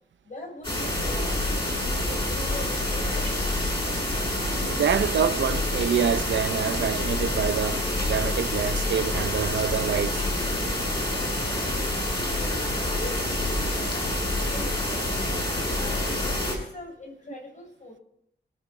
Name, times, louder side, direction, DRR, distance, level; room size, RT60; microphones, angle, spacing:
voice 1, 0.2-3.3 12.8-13.5 13.8-15.2 15.7-18.0, left 2 dB, 40° left, 6.8 m, -42 dB
sound 1, 0.6-16.5, left 1 dB, 25° left, 7.4 m, -27 dB
voice 2, 4.3-10.3, right 8 dB, 85° right, 0.7 m, -27 dB
28.5 x 9.7 x 4.4 m
wide cardioid pair, 125°, 19 cm